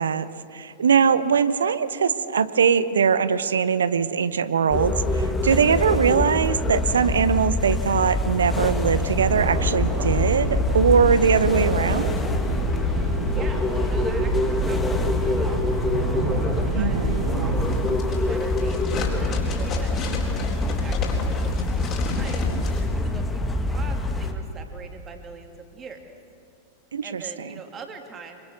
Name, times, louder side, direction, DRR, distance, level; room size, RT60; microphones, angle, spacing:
voice 1, 0.0-12.2 16.7-17.1 26.9-27.2, right 6 dB, 70° right, 14 dB, 0.9 m, -21 dB
sound 1, 4.7-24.3, left 2 dB, 15° left, 2.0 m, -25 dB
sound 2, 9.1-17.8, right 3 dB, 50° right, 5.3 m, -29 dB
voice 2, 13.3-15.8 16.5-22.5 22.9-26.0 27.0-28.4, right 5 dB, 25° right, 4 dB, 3.0 m, -42 dB
sound 3, 17.6-22.8, left 3 dB, 30° left, 4.4 m, -32 dB
26.0 x 24.5 x 6.5 m, 2.7 s
figure-of-eight pair, 90°, 0 cm